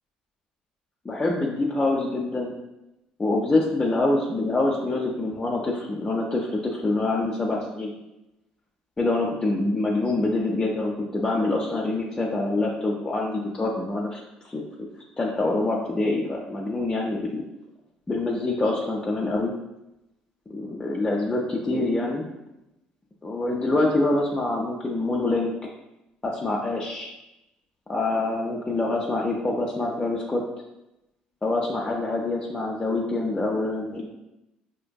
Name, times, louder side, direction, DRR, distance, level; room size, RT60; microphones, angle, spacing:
voice 1, 1.0-2.5 3.2-7.9 9.0-14.6 15.2-17.5 18.1-19.5 20.5-22.3 23.2-25.5 26.2-27.1 27.9-30.4 31.4-34.0, left 2 dB, 20° left, -3 dB, 0.5 m, -25 dB
4.4 x 2.5 x 2.2 m, 0.92 s
hypercardioid pair, 70°, 3 cm